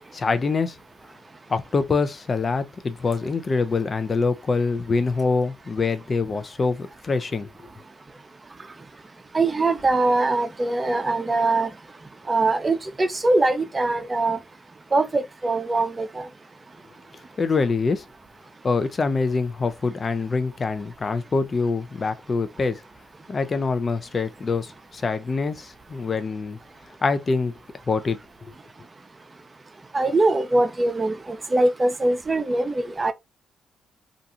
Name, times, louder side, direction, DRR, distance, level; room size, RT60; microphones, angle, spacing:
voice 1, 0.1-0.8 1.5-7.5 17.4-18.0 18.6-22.8 23.3-26.6 27.0-27.5 27.9-28.2, left 4 dB, 40° left, 0.6 m, -25 dB
voice 2, 9.3-11.7 12.3-14.4 14.9-16.3 29.9-33.1, right 2 dB, 30° right, 0.6 m, -22 dB
2.5 x 2.3 x 2.8 m
supercardioid pair, 55°, 0 cm